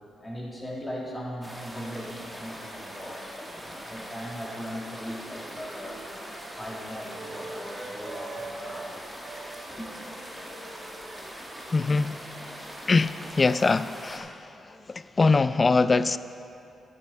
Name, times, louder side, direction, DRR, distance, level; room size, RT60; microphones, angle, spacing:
voice 1, 0.2-6.0 6.6-9.0 9.7-9.9, equal, 15° left, -4 dB, 2.8 m, -39 dB
sound 1, 1.4-14.2, equal, 5° right, 1.7 m, -42 dB
sound 2, 5.1-8.9 9.2-13.6, right 3 dB, 55° right, 1.6 m, -45 dB
voice 2, 11.7-12.2 12.9-14.4 14.9-16.2, left 3 dB, 35° left, 15 dB, 0.3 m, -23 dB
10.5 x 9.6 x 4.5 m, 2.7 s
supercardioid pair, 60°, 0 cm